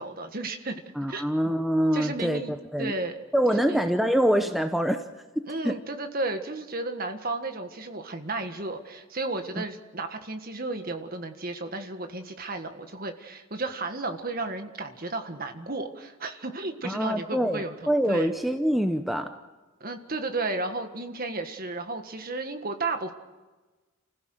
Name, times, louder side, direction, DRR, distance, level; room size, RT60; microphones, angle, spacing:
voice 1, 0.0-0.8 1.1-1.3 1.9-2.5 2.8-3.2 3.5-3.8 5.5-18.3 19.8-23.1, right 2 dB, 40° right, 6 dB, 1.6 m, -33 dB
voice 2, 1.0-2.4 2.7-2.9 3.3-5.0 5.6-5.7 9.6-9.7 16.8-19.4, equal, ahead, 6 dB, 0.6 m, -25 dB
29.0 x 16.0 x 6.5 m, 1.2 s
head